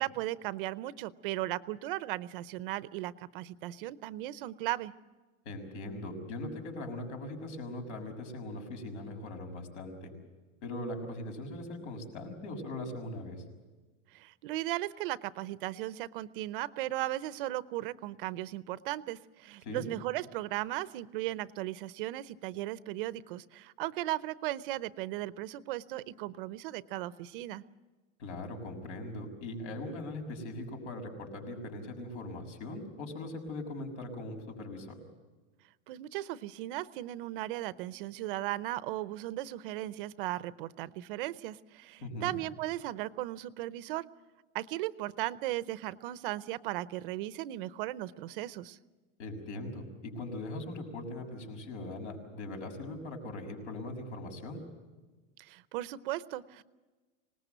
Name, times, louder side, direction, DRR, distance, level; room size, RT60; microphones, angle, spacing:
voice 1, 0.0-4.9 14.1-27.6 35.9-44.1 44.5-48.8 55.4-56.6, right 15 dB, 45° right, 16 dB, 0.7 m, -36 dB
voice 2, 5.4-10.1 10.6-13.4 19.6-19.9 28.2-35.0 42.0-42.4 49.2-54.6, left 1 dB, 70° left, 5 dB, 6.6 m, -40 dB
26.0 x 19.5 x 8.0 m, 1.3 s
supercardioid pair, 165°, 37 cm